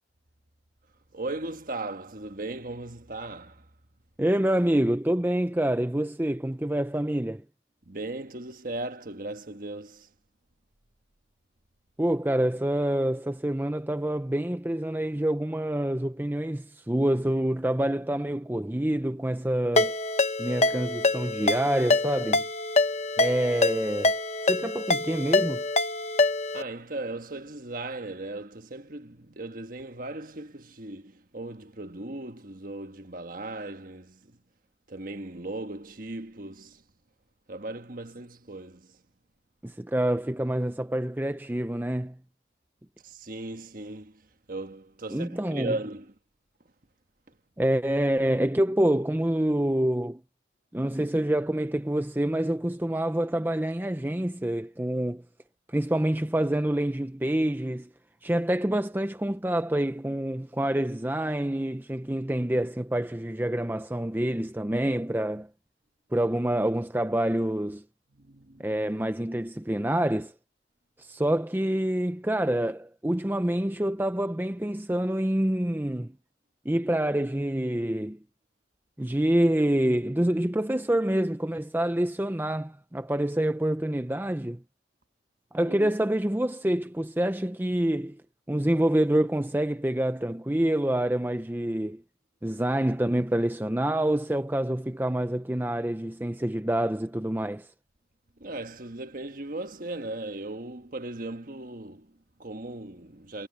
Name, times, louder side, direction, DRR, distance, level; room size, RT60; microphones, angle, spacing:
voice 1, 1.1-3.7 7.8-10.1 26.5-34.4 34.9-36.8 37.5-39.0 43.0-46.1 68.1-68.8 85.6-85.9 98.4-103.5, right 2 dB, 50° right, 1.4 m, -37 dB
voice 2, 4.2-7.4 12.0-20.0 20.4-22.4 23.2-25.6 39.6-42.2 45.1-45.7 47.6-50.2 50.7-55.2 55.7-57.9 58.2-65.5 66.1-67.8 68.6-70.3 71.0-76.1 76.6-78.2 79.0-84.6 85.5-88.2 88.5-92.0 92.4-97.7, right 1 dB, 10° right, 0.6 m, -27 dB
Ringtone, 19.8-26.6, left 3 dB, 35° left, 1.2 m, -25 dB
head